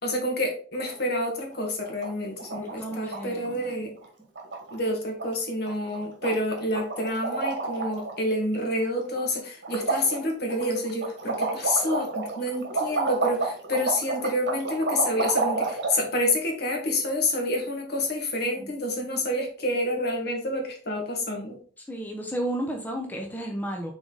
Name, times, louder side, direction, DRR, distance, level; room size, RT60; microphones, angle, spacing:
voice 1, 0.0-3.9 4.7-21.6, left 1 dB, 60° left, 2 dB, 1.8 m, -28 dB
sound 1, 0.7-1.2 1.5-1.6 1.8-2.1 2.4-3.2 3.4-3.7 4.0-4.1 4.4-4.9 5.2-5.3 5.7-6.0 6.2-8.2 8.5-9.3 9.6-15.9, right 3 dB, 65° right, 1.9 m, -30 dB
voice 2, 2.6-3.6 3.8-3.9 18.6-18.7 21.9-23.9, right 1 dB, 10° left, 1 dB, 0.8 m, -33 dB
6.2 x 3.9 x 4.0 m, 0.43 s
head